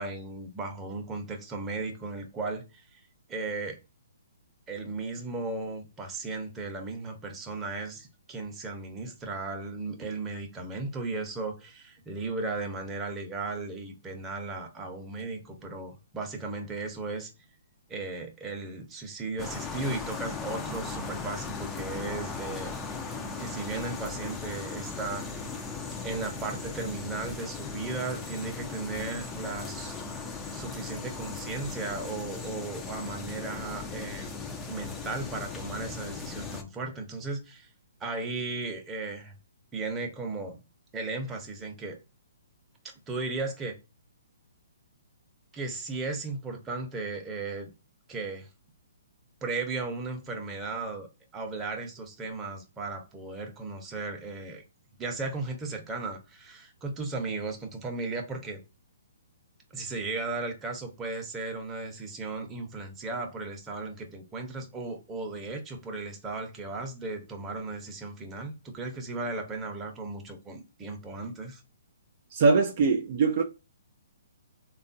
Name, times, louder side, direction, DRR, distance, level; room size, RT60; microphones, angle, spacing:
voice 1, 0.0-3.0 3.3-3.8 4.7-17.3 17.9-22.9 23.4-25.3 26.0-30.0 30.5-37.7 38.0-39.3 39.7-40.6 40.9-42.0 43.1-43.8 45.5-47.7 48.1-48.5 49.4-51.1 51.3-54.6 55.0-58.6 59.7-71.6, right 3 dB, 15° right, 0.8 m, -36 dB
sound 1, 19.4-36.6, left 4 dB, 10° left, 0.5 m, -38 dB
voice 2, 72.3-73.4, right 4 dB, 50° right, 0.4 m, -22 dB
3.5 x 2.3 x 2.6 m
hypercardioid pair, 135°, 0 cm